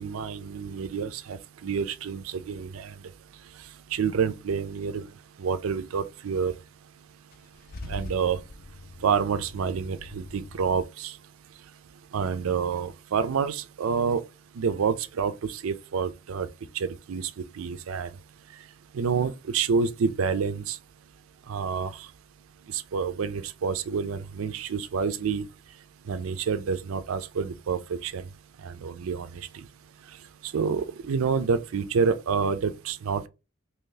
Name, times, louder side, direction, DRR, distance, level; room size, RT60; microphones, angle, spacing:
voice 1, 0.0-2.9 3.9-5.1 5.4-6.5 7.8-8.4 9.0-11.1 12.1-14.2 14.6-16.5 16.7-17.3 17.6-18.1 18.9-20.8 21.5-21.9 22.7-25.4 26.1-28.2 28.6-29.4 30.4-33.3, right 6 dB, 80° right, 0.4 m, -28 dB
Car / Engine starting / Idling, 7.3-10.8, left 2 dB, 45° left, 0.4 m, -43 dB
3.0 x 2.7 x 3.8 m
head